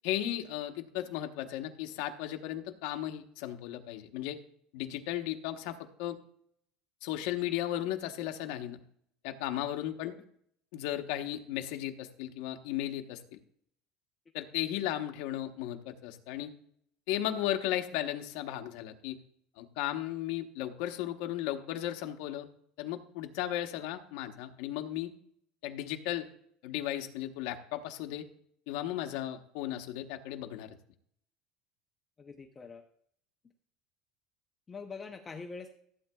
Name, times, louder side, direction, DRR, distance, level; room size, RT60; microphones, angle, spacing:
voice 1, 0.0-4.4 4.7-6.2 7.0-8.8 9.2-10.1 10.7-13.4 14.3-16.5 17.1-19.2 19.6-22.5 22.8-25.1 25.6-26.3 26.6-28.2 28.7-30.7, left 12 dB, 70° left, 6 dB, 1.0 m, -35 dB
voice 2, 32.2-32.8 34.7-35.7, left 4 dB, 20° left, 5 dB, 0.7 m, -44 dB
15.0 x 8.5 x 2.3 m, 0.66 s
cardioid pair, 155°, 0 cm